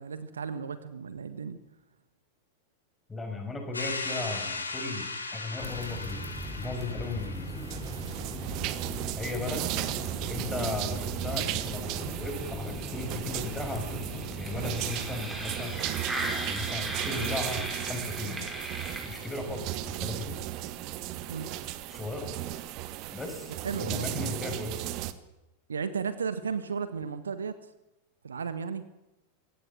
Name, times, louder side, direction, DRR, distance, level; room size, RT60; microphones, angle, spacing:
voice 1, 0.0-1.6 21.3-21.5 23.6-24.1 25.7-27.6 28.2-28.8, right 6 dB, 70° right, 13 dB, 1.5 m, -34 dB
voice 2, 3.1-6.2 6.6-7.5 9.2-9.7 10.3-14.1 14.4-18.5 19.1-20.4 21.9-22.4 23.1-24.8, left 3 dB, 10° left, 3 dB, 6.5 m, -36 dB
sound 1, 3.7-8.5, left 3 dB, 80° left, 3.4 m, -38 dB
sound 2, 5.6-19.5, right 1 dB, 10° right, 5.3 m, -37 dB
sound 3, 7.6-25.1, right 14 dB, 40° right, 1.5 m, -36 dB
22.5 x 17.5 x 7.5 m, 0.97 s
figure-of-eight pair, 90°, 0 cm